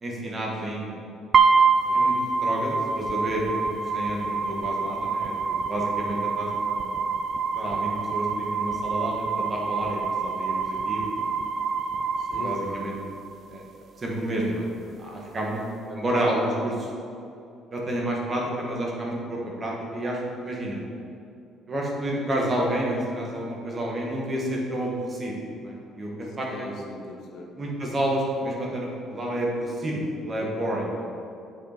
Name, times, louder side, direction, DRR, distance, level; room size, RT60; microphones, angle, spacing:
voice 1, 0.0-0.9 1.9-2.1 2.4-6.5 6.8-6.9 7.6-11.2 12.4-13.0 13.5-13.6 14.0-14.7 15.0-16.9 17.7-20.8 21.7-25.3 25.6-26.5 27.6-31.1, right 1 dB, 30° right, -2 dB, 1.9 m, -29 dB
sound 1, 1.3-13.3, right 5 dB, 45° right, 0.5 m, -26 dB
voice 2, 12.2-12.9 26.3-27.5 30.4-30.5, left 2 dB, 60° left, 1 dB, 1.1 m, -41 dB
8.7 x 5.7 x 5.2 m, 2.5 s
cardioid pair, 120°, 0 cm